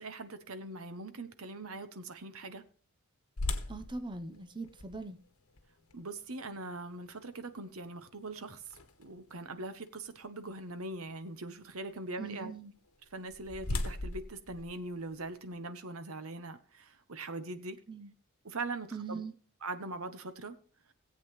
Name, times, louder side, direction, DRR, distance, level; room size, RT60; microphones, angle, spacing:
voice 1, 0.0-2.6 5.9-12.5 13.1-17.8 18.4-19.2 19.6-20.6, right 2 dB, 70° right, 1.2 m, -42 dB
sound 1, 3.4-9.3 9.9-10.0 10.6-10.8 12.9-15.5, left 2 dB, 75° left, 1.5 m, -41 dB
voice 2, 3.7-5.2 12.2-12.7 17.9-18.1 18.9-19.3, right 3 dB, 20° right, 0.8 m, -41 dB
18.0 x 8.1 x 3.2 m
head